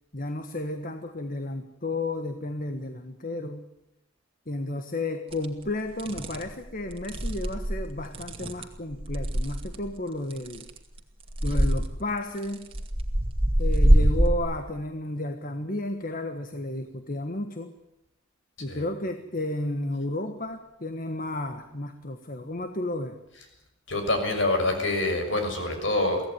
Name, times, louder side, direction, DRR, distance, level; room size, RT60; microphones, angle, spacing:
voice 1, 0.1-3.6 4.5-10.7 11.4-12.7 13.6-17.7 18.6-23.2, left 1 dB, 40° left, 7 dB, 1.4 m, -32 dB
sound 1, 5.3-5.5 6.0-6.4 6.9-9.8 10.3-11.0 11.3-11.8 12.4-14.3, equal, 25° right, 2.3 m, -24 dB
voice 2, 23.9-26.3, left 2 dB, 60° left, 5 dB, 6.5 m, -26 dB
24.0 x 16.5 x 9.8 m, 0.86 s
head